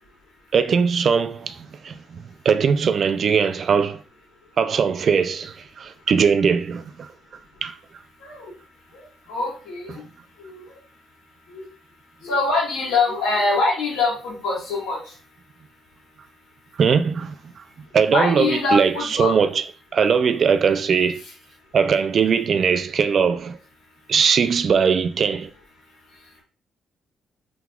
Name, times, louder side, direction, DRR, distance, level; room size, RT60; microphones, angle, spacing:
voice 1, 0.5-2.2 2.4-4.0 4.6-7.1 7.6-7.8 9.9-10.0 16.8-17.6 17.9-19.6 19.9-21.2 21.7-23.6 24.1-25.5, right 6 dB, 50° right, 0.3 m, -20 dB
voice 2, 8.2-8.5 9.3-9.9 10.4-10.6 11.5-11.6 12.2-15.0 18.1-19.3, left 3 dB, 85° left, 1.6 m, -23 dB
3.6 x 2.9 x 2.3 m
cardioid pair, 90°, 0 cm